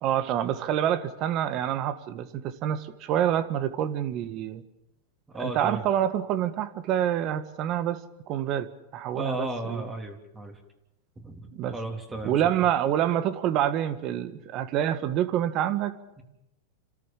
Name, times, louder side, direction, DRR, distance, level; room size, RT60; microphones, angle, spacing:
voice 1, 0.0-4.6 5.4-8.0 8.3-8.7 8.9-9.9 11.5-11.7 12.2-15.9, right 10 dB, 45° right, 11 dB, 1.6 m, -27 dB
voice 2, 5.3-5.8 9.1-10.6 11.2-12.5 16.2-16.3, right 1 dB, 15° right, 3 dB, 3.5 m, -35 dB
30.0 x 13.5 x 7.5 m, 0.88 s
hypercardioid pair, 120°, 0 cm